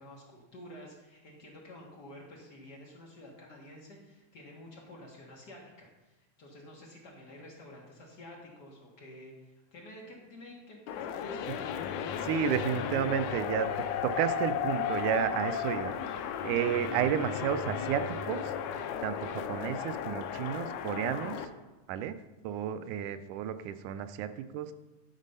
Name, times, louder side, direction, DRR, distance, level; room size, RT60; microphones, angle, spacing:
voice 1, 0.0-11.5, left 1 dB, 50° left, -2 dB, 1.2 m, -50 dB
sound 1, 10.9-21.5, left 8 dB, 85° left, 2.0 m, -35 dB
voice 2, 12.2-13.7 14.0-16.0 16.4-18.5 19.0-21.5 21.9-22.2 22.4-24.7, right 9 dB, 90° right, 10 dB, 2.0 m, -32 dB
10.5 x 4.1 x 5.4 m, 1.1 s
omnidirectional pair, 3.4 m